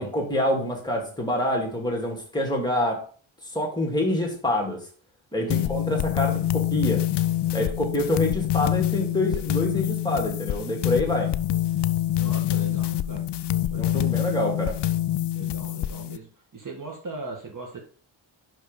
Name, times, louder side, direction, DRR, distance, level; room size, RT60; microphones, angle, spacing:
voice 1, 0.0-3.0 3.5-4.8 5.3-7.0 7.5-11.3 13.7-14.8, left 1 dB, 10° left, 0 dB, 2.6 m, -26 dB
voice 2, 5.4-5.7 12.1-13.3 13.7-14.4 15.3-17.8, right 3 dB, 40° right, 0 dB, 1.7 m, -39 dB
sound 1, 5.5-16.2, left 12 dB, 60° left, 0.5 m, -26 dB
5.8 x 5.4 x 5.3 m, 0.43 s
wide cardioid pair, 85°, 48 cm